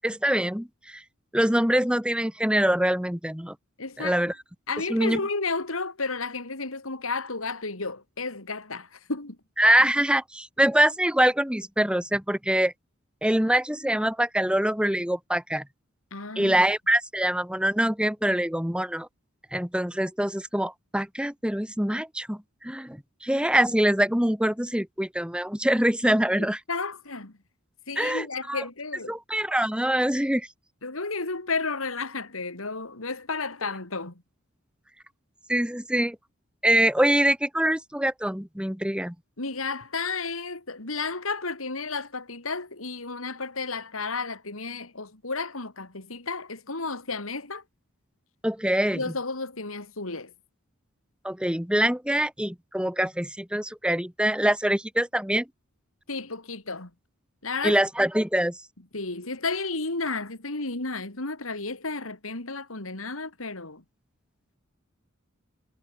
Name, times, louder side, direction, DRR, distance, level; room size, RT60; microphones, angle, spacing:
voice 1, 0.0-1.0 1.3-3.6 4.0-4.3 4.9-5.2 9.6-12.7 13.2-15.7 16.4-19.1 19.5-26.6 28.0-28.6 29.1-30.5 35.5-36.2 36.6-39.1 48.4-49.1 51.2-55.5 57.6-58.5, right 1 dB, 5° right, 2.1 m, -24 dB
voice 2, 3.8-4.3 4.7-9.4 16.1-16.7 26.7-27.3 27.9-29.2 30.8-34.1 39.4-47.6 48.9-50.3 56.1-56.9 57.4-57.8 58.9-63.8, left 3 dB, 85° left, 3.5 m, -32 dB
head